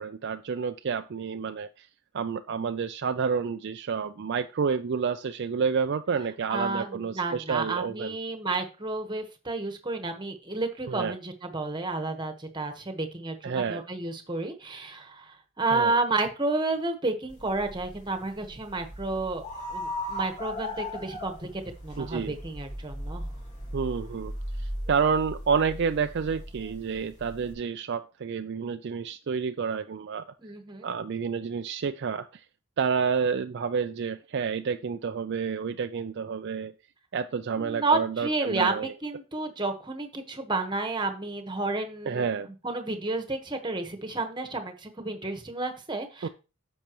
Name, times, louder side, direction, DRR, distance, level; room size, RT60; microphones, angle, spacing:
voice 1, 0.0-1.9 2.1-8.2 10.9-11.1 13.4-13.8 15.7-16.0 22.0-22.3 23.7-24.3 24.6-30.2 30.8-32.3 32.8-36.7 37.1-38.9 42.1-42.5 46.2-46.3, right 6 dB, 50° right, 8 dB, 0.4 m, -29 dB
voice 2, 6.5-19.4 19.7-23.3 30.4-30.9 37.6-42.3 42.6-46.3, right 3 dB, 20° right, 6 dB, 1.3 m, -31 dB
sound 1, 17.3-27.5, left 1 dB, 35° left, 2.3 m, -38 dB
10.0 x 7.1 x 3.0 m, 0.32 s
head